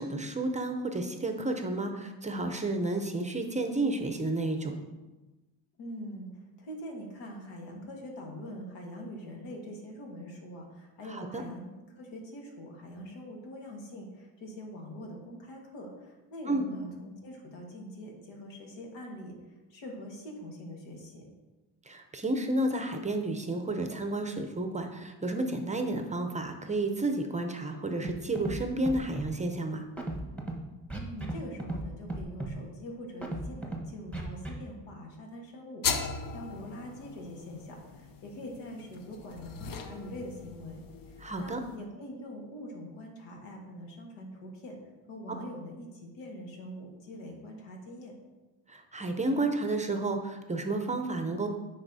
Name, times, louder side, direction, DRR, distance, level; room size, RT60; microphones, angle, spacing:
voice 1, 0.0-4.7 11.1-11.4 16.5-16.7 21.9-29.8 41.2-41.6 48.7-51.5, right 2 dB, 15° right, 5 dB, 0.6 m, -31 dB
voice 2, 5.8-21.3 30.9-40.8 41.1-44.8 45.1-48.1, equal, 80° left, 1 dB, 1.6 m, -44 dB
Scratching (performance technique), 28.0-28.1 28.4-28.6 28.8-29.3 30.0-30.5 30.9-31.3 31.6-31.8 32.1-32.5 33.2-33.8 34.1-34.5, right 1 dB, 5° left, 1.1 m, -35 dB
sound 1, 35.8-41.8, left 6 dB, 50° left, 0.7 m, -38 dB
9.7 x 4.2 x 2.7 m, 1.1 s
cardioid pair, 90°, 43 cm